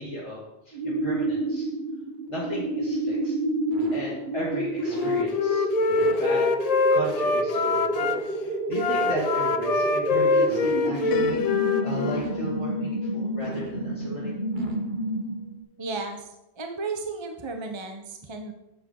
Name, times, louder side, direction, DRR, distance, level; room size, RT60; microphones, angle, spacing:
voice 1, 0.0-1.7 2.3-3.3 3.9-6.5 6.9-7.9 8.4-11.4 11.8-14.4, equal, 30° left, -7 dB, 2.4 m, -35 dB
sound 1, 0.7-15.6, right 1 dB, 45° right, 1.5 m, -29 dB
Wind instrument woodwind instrument, 4.9-8.2 8.7-12.3, left 4 dB, 45° left, 0.5 m, -24 dB
Piano, 11.1-14.9, left 7 dB, 70° left, 0.8 m, -36 dB
voice 2, 15.8-16.2 16.6-18.5, right 3 dB, 25° right, 4 dB, 0.9 m, -33 dB
9.8 x 9.0 x 3.9 m, 0.91 s
omnidirectional pair, 1.1 m